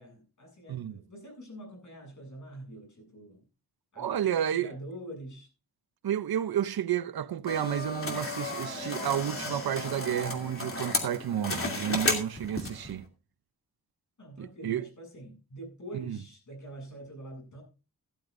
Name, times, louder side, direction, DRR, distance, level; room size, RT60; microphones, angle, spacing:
voice 1, 0.0-3.4 3.9-4.1 4.5-5.5 14.2-17.6, right 1 dB, 55° left, 7.5 m, -45 dB
voice 2, 4.0-4.7 6.0-13.1 14.4-14.9 15.9-16.2, right 10 dB, 90° right, 0.7 m, -31 dB
sound 1, 7.5-12.9, left 2 dB, 35° left, 2.7 m, -33 dB
17.0 x 12.0 x 2.6 m
wide cardioid pair, 155°, 36 cm